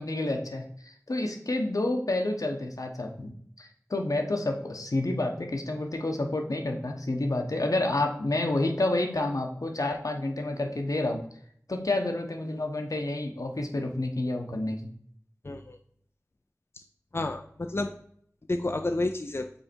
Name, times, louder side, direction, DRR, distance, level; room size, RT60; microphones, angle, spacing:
voice 1, 0.0-3.3 3.6-11.2 11.7-14.9, left 2 dB, 75° left, 3 dB, 1.0 m, -29 dB
voice 2, 15.4-15.8 17.1-17.9 18.5-19.5, left 2 dB, 45° left, 5 dB, 0.4 m, -30 dB
5.5 x 4.0 x 4.4 m, 0.64 s
wide cardioid pair, 45°, 6 cm